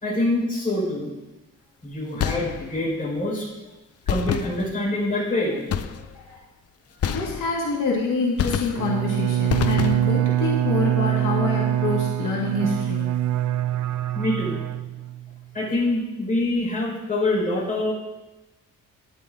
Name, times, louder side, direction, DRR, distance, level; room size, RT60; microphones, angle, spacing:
voice 1, 0.0-1.1 1.8-3.5 4.1-5.6 6.0-6.4 14.1-14.6 15.5-17.9, left 1 dB, 25° left, -6 dB, 4.7 m, -25 dB
sound 1, 2.2-2.9 4.1-5.0 5.7-6.3 7.0-7.8 8.4-9.1 9.5-10.3, left 9 dB, 50° left, 0.6 m, -28 dB
voice 2, 7.0-13.1, left 3 dB, 85° left, -4 dB, 2.3 m, -26 dB
Bowed string instrument, 8.7-15.4, right 12 dB, 65° right, 0.5 m, -24 dB
12.0 x 10.5 x 3.8 m, 1.0 s
wide cardioid pair, 170°, 31 cm